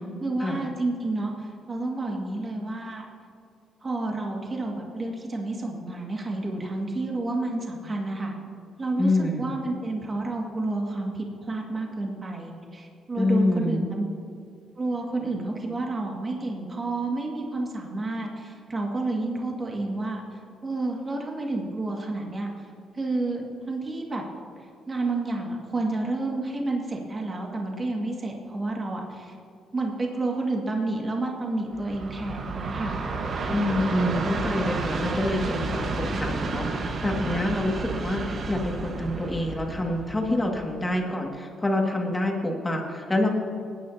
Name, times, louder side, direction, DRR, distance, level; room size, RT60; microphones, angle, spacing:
voice 1, 0.2-3.1 3.8-8.3 8.8-14.1 14.8-20.2 20.6-22.5 23.0-24.2 24.9-29.3 29.7-33.0, right 2 dB, 30° right, 0 dB, 2.0 m, -30 dB
voice 2, 9.0-9.5 13.2-13.9 33.5-43.3, left 1 dB, 15° left, 1 dB, 2.0 m, -26 dB
Train, 31.7-40.9, right 3 dB, 55° right, 1.3 m, -31 dB
19.5 x 9.7 x 2.8 m, 2.3 s
cardioid pair, 90°, 0 cm